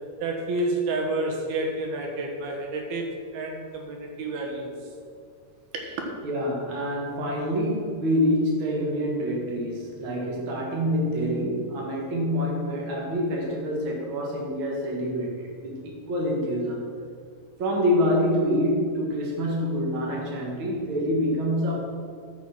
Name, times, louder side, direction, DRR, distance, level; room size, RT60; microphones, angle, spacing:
voice 1, 0.2-4.7 5.7-6.0, right 2 dB, 65° right, 1 dB, 2.9 m, -29 dB
voice 2, 6.2-16.9 17.6-21.8, equal, 80° right, -2 dB, 1.1 m, -26 dB
14.0 x 6.1 x 5.9 m, 2.2 s
omnidirectional pair, 5.3 m